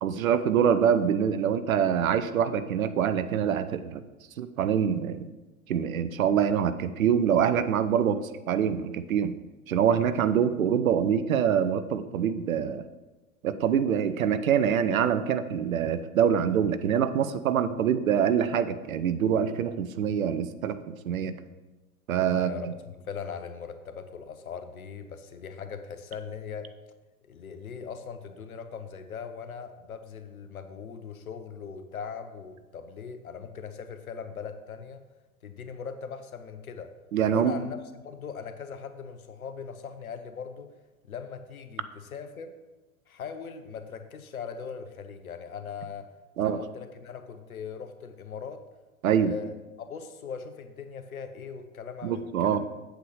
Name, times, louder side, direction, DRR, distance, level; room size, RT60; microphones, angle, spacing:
voice 1, 0.0-4.0 4.4-5.3 5.7-8.2 8.5-9.4 9.7-12.8 13.4-21.3 22.1-22.7 37.1-37.6 46.4-46.6 49.0-49.3 52.0-52.6, right 8 dB, 70° right, 12 dB, 0.6 m, -25 dB
voice 2, 22.3-26.7 27.3-35.0 35.4-36.9 37.3-40.7 41.0-42.5 43.1-46.1 46.4-48.6 49.1-52.7, left 6 dB, 75° left, 10 dB, 0.8 m, -40 dB
8.1 x 7.7 x 3.3 m, 1.1 s
figure-of-eight pair, 90°, 43 cm